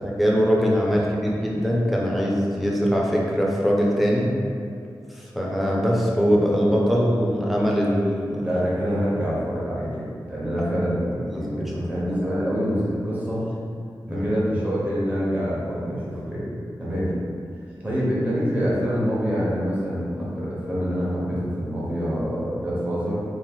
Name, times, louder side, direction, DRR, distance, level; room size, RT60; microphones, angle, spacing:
voice 1, 0.0-4.3 5.1-8.5 10.6-10.7 11.5-11.6 14.1-14.2, equal, ahead, -3 dB, 0.5 m, -22 dB
voice 2, 8.4-13.4 14.1-16.5 16.8-17.1 17.8-23.2, equal, 20° right, -8 dB, 0.9 m, -26 dB
2.9 x 2.5 x 3.5 m, 2.3 s
wide cardioid pair, 115°, 8 cm